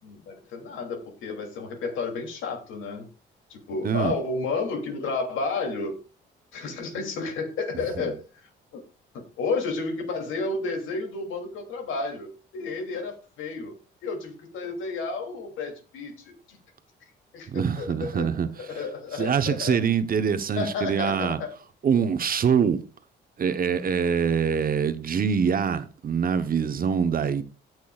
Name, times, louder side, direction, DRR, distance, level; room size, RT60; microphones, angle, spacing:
voice 1, 0.0-3.1 3.5-6.0 6.5-8.8 9.1-13.7 14.0-16.6 17.0-18.3 18.6-19.8 20.6-21.5, left 4 dB, 85° left, 2.9 m, -32 dB
voice 2, 17.5-18.8 19.1-21.4 21.8-22.8 23.4-27.4, right 7 dB, 45° right, 1.0 m, -24 dB
17.0 x 6.1 x 2.4 m
cardioid pair, 90°, 20 cm